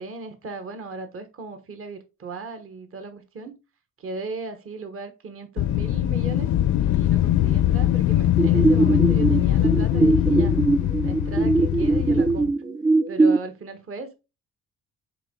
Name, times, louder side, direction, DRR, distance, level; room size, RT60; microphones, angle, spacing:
voice 1, 0.0-3.6 4.0-6.5 6.8-10.6 11.0-12.5 13.1-14.1, right 3 dB, 45° right, 1.2 m, -37 dB
Wind, 5.6-12.5, left 13 dB, 75° left, 0.6 m, -22 dB
sound 1, 8.4-13.4, right 3 dB, 15° right, 0.4 m, -21 dB
8.3 x 3.6 x 3.7 m
cardioid pair, 90°, 30 cm